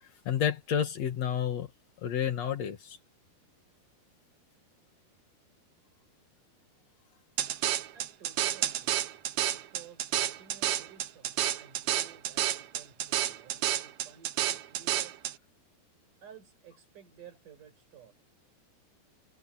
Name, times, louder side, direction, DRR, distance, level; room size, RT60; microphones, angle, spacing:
voice 1, 0.3-1.7 2.0-3.0, left 8 dB, 55° left, 2.2 m, -30 dB
sound 1, 7.4-15.3, right 12 dB, 85° right, 1.6 m, -30 dB
voice 2, 7.9-9.2 9.5-15.2 16.2-18.1, right 8 dB, 50° right, 7.1 m, -54 dB
omnidirectional pair, 4.8 m